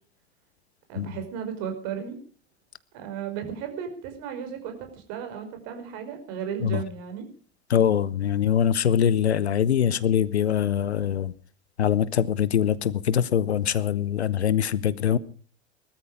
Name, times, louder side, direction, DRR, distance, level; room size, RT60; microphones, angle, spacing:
voice 1, 0.9-2.2 2.9-7.3, right 8 dB, 50° right, 5.2 m, -34 dB
voice 2, 7.7-11.3 11.8-15.2, left 9 dB, 75° left, 1.0 m, -23 dB
19.5 x 13.5 x 4.9 m
figure-of-eight pair, 85°, 33 cm